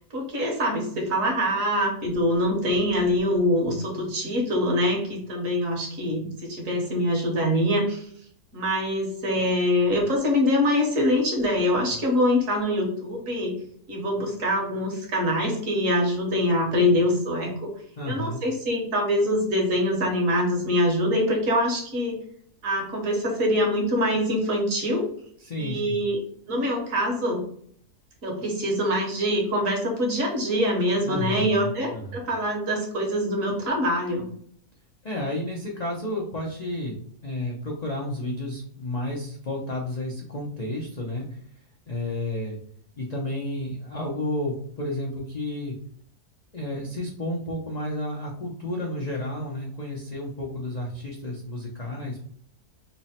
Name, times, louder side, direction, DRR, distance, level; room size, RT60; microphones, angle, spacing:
voice 1, 0.1-8.1 8.5-13.6 13.9-17.7 18.0-22.2 22.6-25.1 25.6-26.2 26.5-27.5 28.2-34.3, left 1 dB, 60° right, 1 dB, 1.3 m, -24 dB
voice 2, 18.0-18.4 25.4-26.0 31.0-32.2 35.0-41.4 41.9-42.6 43.0-45.8 46.5-52.2, left 1 dB, 70° left, -2 dB, 0.3 m, -31 dB
3.3 x 2.1 x 4.1 m, 0.62 s
omnidirectional pair, 1.7 m